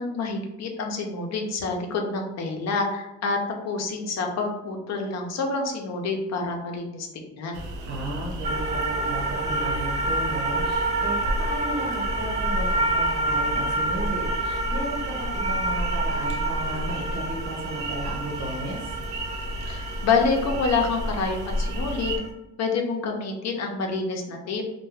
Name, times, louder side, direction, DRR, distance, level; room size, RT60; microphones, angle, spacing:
voice 1, 0.0-3.4 3.6-7.5 19.7-22.2 22.6-24.6, left 4 dB, 60° left, 2 dB, 0.6 m, -27 dB
sound 1, 7.5-22.2, equal, 80° right, 0.6 m, -32 dB
voice 2, 7.9-18.9, right 1 dB, 60° right, -2 dB, 1.1 m, -34 dB
sound 2, 8.4-22.3, right 2 dB, 25° right, 0.4 m, -29 dB
2.3 x 2.2 x 3.3 m, 0.99 s
cardioid pair, 90°, 30 cm